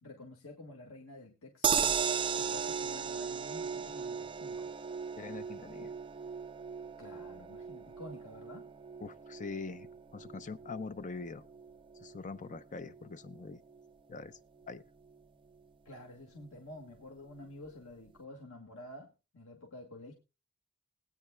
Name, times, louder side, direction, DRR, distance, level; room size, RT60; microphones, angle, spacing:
voice 1, 0.0-4.7 7.0-8.7 15.9-20.1, left 1 dB, 85° left, 1 dB, 1.7 m, -50 dB
sound 1, 1.6-13.9 14.2-14.3 14.6-14.7, right 6 dB, 25° right, 0.5 m, -37 dB
voice 2, 5.2-5.9 9.0-11.4 12.0-13.6 14.1-14.4 14.7-14.8, left 4 dB, 35° left, 12 dB, 0.6 m, -43 dB
21.0 x 9.3 x 2.2 m, 0.28 s
head